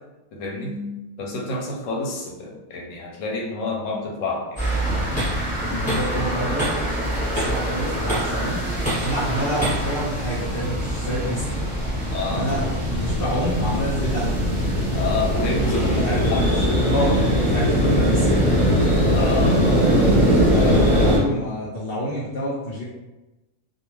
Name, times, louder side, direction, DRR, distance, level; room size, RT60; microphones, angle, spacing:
voice 1, 0.3-4.6 12.1-12.5 14.9-16.7 19.1-19.8, left 3 dB, 90° left, -1 dB, 1.0 m, -29 dB
sound 1, 4.6-21.2, equal, 5° left, 1.1 m, -21 dB
voice 2, 5.6-6.7 7.1-8.6 9.0-11.5 12.3-14.3 15.9-18.3 20.3-22.8, equal, 60° left, -7 dB, 0.7 m, -28 dB
2.3 x 2.1 x 3.0 m, 1.1 s
omnidirectional pair, 1.3 m